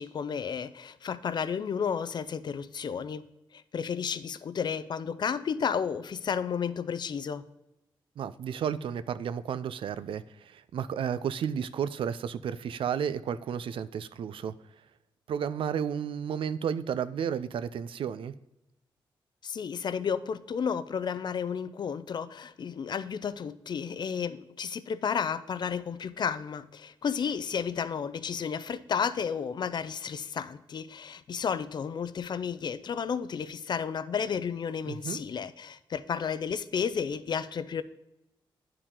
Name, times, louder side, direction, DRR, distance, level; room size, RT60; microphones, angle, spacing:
voice 1, 0.0-3.3 3.5-7.4 19.4-37.8, left 7 dB, 55° left, 0.4 m, -32 dB
voice 2, 8.2-14.5 15.3-18.3 34.8-35.2, right 8 dB, 75° right, 0.4 m, -32 dB
9.8 x 4.8 x 3.7 m
cardioid pair, 80°, 9 cm